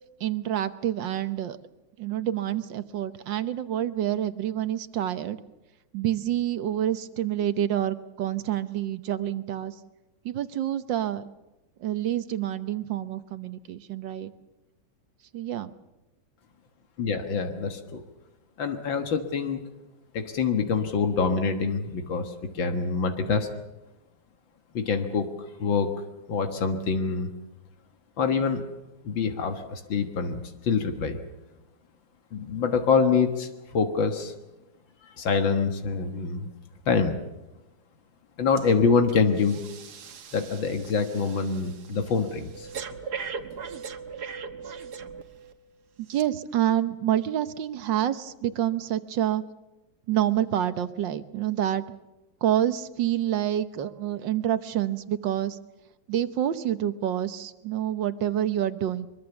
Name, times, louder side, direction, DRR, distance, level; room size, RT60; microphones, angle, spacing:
voice 1, 0.2-1.6 2.0-5.4 5.9-9.7 10.2-11.2 11.8-14.3 15.3-15.7 46.0-49.4 50.1-51.8 52.4-55.6 56.1-59.1, right 11 dB, 75° right, 12 dB, 1.7 m, -27 dB
voice 2, 17.0-18.0 18.6-19.6 20.1-23.5 24.7-25.3 25.6-25.9 26.3-27.3 28.2-28.6 29.0-31.2 32.3-34.3 35.0-36.5 36.9-37.2 38.4-39.6 40.3-42.7, left 5 dB, 85° left, 6 dB, 2.3 m, -25 dB
Breathing, 38.6-38.8 39.1-45.5 46.1-46.2, right 6 dB, 60° right, 1.7 m, -40 dB
23.5 x 22.5 x 7.1 m, 1.0 s
omnidirectional pair, 2.0 m